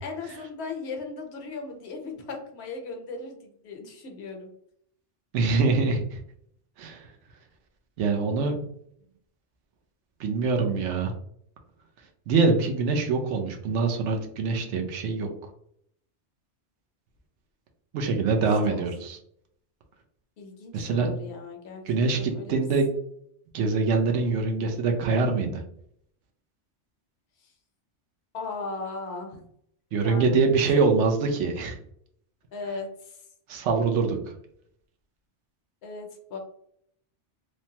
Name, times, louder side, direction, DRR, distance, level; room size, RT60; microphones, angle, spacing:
voice 1, 0.0-4.5 18.7-19.0 20.4-21.8 22.2-22.6 24.2-24.3 28.3-29.4 30.0-30.8 32.5-33.2 35.8-36.4, left 3 dB, 65° left, 2 dB, 0.8 m, -37 dB
voice 2, 5.3-6.2 6.8-7.1 8.0-8.7 10.2-11.1 12.3-15.3 17.9-19.2 20.7-21.1 21.8-22.9 23.5-25.6 29.9-31.8 33.5-34.2, right 4 dB, 75° right, 3 dB, 0.9 m, -24 dB
3.2 x 2.1 x 2.7 m, 0.70 s
omnidirectional pair, 1.2 m